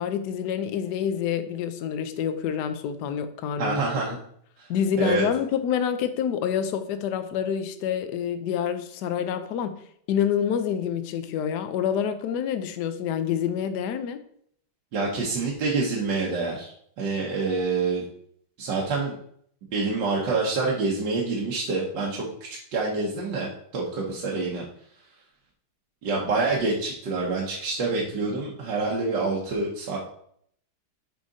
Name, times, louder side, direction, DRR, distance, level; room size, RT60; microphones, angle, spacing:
voice 1, 0.0-4.0 4.7-9.8 10.1-14.2, left 8 dB, 65° left, 9 dB, 1.1 m, -27 dB
voice 2, 3.6-4.2 4.6-4.7 5.0-5.3 14.9-18.0 18.6-19.1 19.7-24.6 26.0-30.0, right 3 dB, 65° right, -4 dB, 1.7 m, -27 dB
6.3 x 5.1 x 4.0 m, 0.65 s
omnidirectional pair, 2.2 m